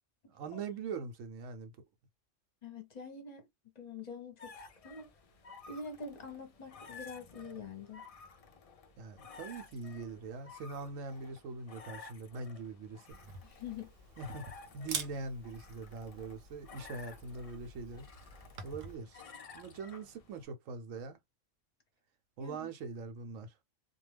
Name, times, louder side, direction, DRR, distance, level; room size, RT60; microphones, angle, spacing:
voice 1, 0.3-1.7 9.0-13.2 14.2-18.1 18.6-19.2 19.5-21.2 22.4-23.5, right 4 dB, 85° right, 1.0 m, -42 dB
voice 2, 2.6-3.5 3.8-5.1 5.7-8.0 13.4-13.9 22.4-22.7, left 4 dB, 40° left, 0.7 m, -45 dB
sound 1, 4.4-20.5, left 5 dB, 70° left, 0.3 m, -54 dB
Camera, 13.1-18.9, right 5 dB, 55° right, 0.8 m, -46 dB
2.3 x 2.2 x 3.2 m
omnidirectional pair, 1.3 m